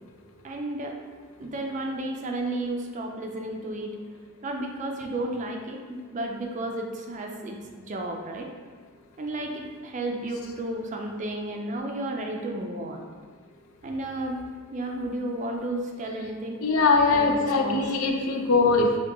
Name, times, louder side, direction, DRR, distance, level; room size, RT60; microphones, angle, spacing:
voice 1, 0.4-1.0 1.4-3.9 4.4-7.6 7.9-8.5 9.2-13.1 13.8-14.4 14.7-16.6 17.1-17.8, right 1 dB, 35° right, 2 dB, 0.4 m, -32 dB
voice 2, 16.6-19.0, left 3 dB, 75° left, 2 dB, 0.5 m, -21 dB
5.8 x 2.2 x 2.9 m, 1.5 s
head